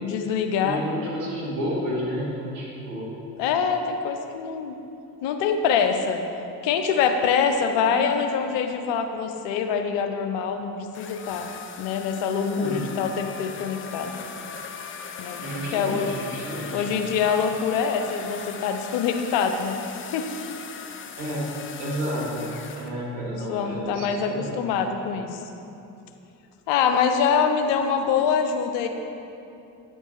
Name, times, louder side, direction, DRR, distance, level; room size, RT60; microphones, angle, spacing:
voice 1, 0.0-0.8 3.4-4.8 5.2-6.2 6.6-11.5 11.8-14.2 15.2-15.4 15.7-16.1 16.7-19.8 20.1-20.2 23.3-25.4 26.7-28.9, left 6 dB, 60° left, 6 dB, 0.8 m, -24 dB
voice 2, 0.6-3.1 7.8-8.2 12.3-12.8 15.4-16.9 21.2-21.5 21.8-24.5, equal, 75° right, -5 dB, 1.8 m, -31 dB
sound 1, 10.9-22.9, left 6 dB, 25° left, 0.5 m, -39 dB
9.2 x 4.6 x 4.2 m, 2.7 s
figure-of-eight pair, 55°, 49 cm